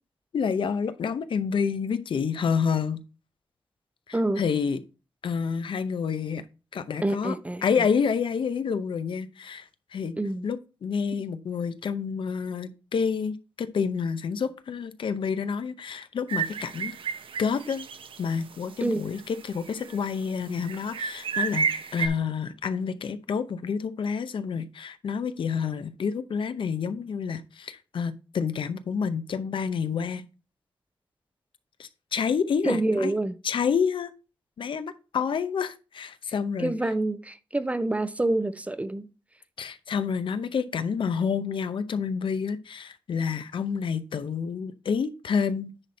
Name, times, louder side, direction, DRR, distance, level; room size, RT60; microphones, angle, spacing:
voice 1, 0.3-3.0 4.1-4.8 5.2-6.4 6.7-7.3 7.6-9.6 9.9-10.2 10.4-16.9 17.4-17.9 18.2-30.2 31.8-33.1 33.4-34.1 34.6-36.7 39.6-45.7, left 6 dB, 70° left, 0.7 m, -28 dB
voice 2, 4.1-4.4 7.0-7.6 10.2-10.5 18.8-19.0 32.6-33.3 36.6-39.1, right 2 dB, 15° right, 0.5 m, -27 dB
sound 1, 16.3-18.2 18.5-18.6 19.1-20.0 20.6-22.1, right 6 dB, 75° right, 0.9 m, -31 dB
9.8 x 4.3 x 4.2 m
wide cardioid pair, 150°, 9 cm